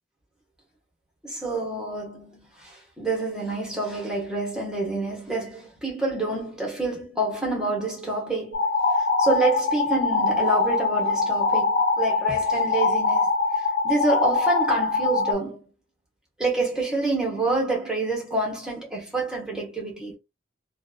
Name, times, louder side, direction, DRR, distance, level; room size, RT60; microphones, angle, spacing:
voice 1, 1.2-8.6 9.2-15.6 16.4-20.2, right 2 dB, 5° right, 1.3 m, -27 dB
sound 1, 8.5-15.3, left 3 dB, 70° left, 1.0 m, -23 dB
3.1 x 2.4 x 2.2 m
head